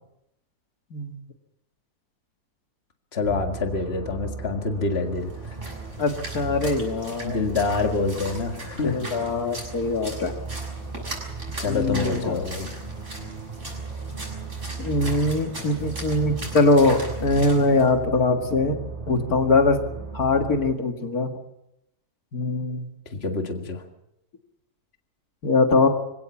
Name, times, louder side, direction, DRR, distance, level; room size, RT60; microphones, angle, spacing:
voice 1, 3.1-5.6 7.2-9.0 11.6-12.7 23.1-23.8, left 4 dB, 40° left, 4 dB, 2.1 m, -27 dB
sound 1, 3.2-20.8, right 4 dB, 25° right, 2.6 m, -36 dB
Splash splatter, 5.1-17.9, right 1 dB, 50° right, 6.9 m, -40 dB
voice 2, 6.0-7.4 8.8-10.3 11.7-12.4 14.8-18.8 19.1-19.8 20.1-21.3 22.3-22.9 25.4-25.9, left 3 dB, 70° left, 4 dB, 2.4 m, -22 dB
26.0 x 17.0 x 7.2 m, 0.85 s
omnidirectional pair, 1.6 m